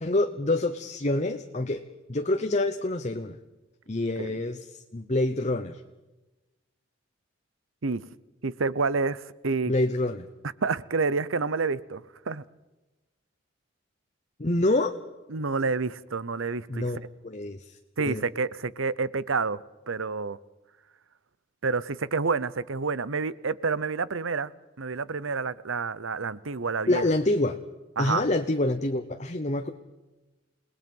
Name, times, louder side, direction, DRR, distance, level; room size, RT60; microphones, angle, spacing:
voice 1, 0.0-1.8 2.1-3.4 3.9-5.8 9.7-10.3 14.4-15.0 16.7-18.2 26.9-27.6 28.0-29.7, left 2 dB, 35° left, 7 dB, 0.9 m, -27 dB
voice 2, 8.4-9.7 10.6-12.4 15.3-16.8 18.0-19.6 19.9-20.4 21.6-24.5 24.8-27.0 28.0-28.3, right 4 dB, 75° right, 19 dB, 0.8 m, -28 dB
29.0 x 19.5 x 5.5 m, 1.1 s
head